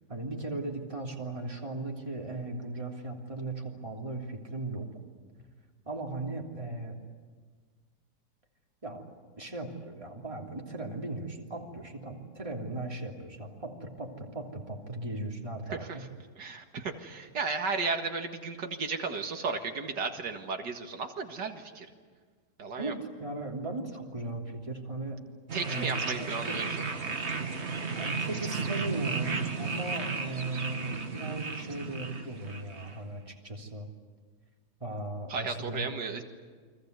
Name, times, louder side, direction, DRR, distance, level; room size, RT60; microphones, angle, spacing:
voice 1, 0.1-4.9 5.8-6.9 8.8-9.0 9.4-16.1 22.8-25.2 25.6-26.6 28.0-33.9 34.8-35.9, right 2 dB, 20° right, 0 dB, 3.2 m, -37 dB
voice 2, 16.4-21.9 22.6-22.9 25.5-26.8 35.3-36.2, right 4 dB, 90° right, 4 dB, 2.4 m, -34 dB
sound 1, 25.5-33.0, right 4 dB, 40° right, 2.0 m, -34 dB
29.5 x 24.0 x 8.2 m, 1.5 s
omnidirectional pair, 1.8 m